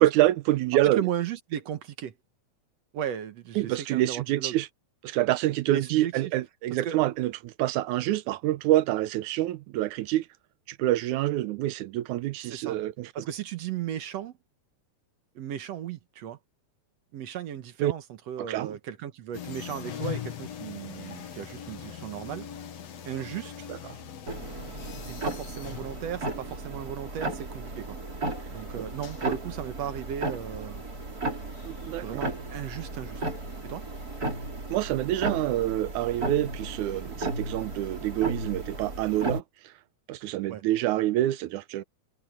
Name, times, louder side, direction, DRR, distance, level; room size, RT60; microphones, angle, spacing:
voice 1, 0.0-1.0 3.6-4.7 5.0-10.3 10.7-13.1 17.8-17.9 18.5-18.7 23.7-23.8 31.6-32.3 34.7-39.7 40.1-41.8, right 15 dB, 90° right, 2.2 m, -26 dB
voice 2, 1.0-2.1 2.9-4.6 5.7-6.3 6.8-7.0 12.4-12.8 13.2-14.3 15.4-16.4 17.1-22.5 23.1-23.7 25.1-28.0 28.5-30.8 32.0-33.2 33.6-33.8 40.5-40.6, right 10 dB, 65° right, 2.2 m, -36 dB
sound 1, 19.3-34.4, left 10 dB, 60° left, 2.6 m, -43 dB
sound 2, 24.3-39.4, right 2 dB, 30° right, 4.2 m, -35 dB
omnidirectional pair, 3.4 m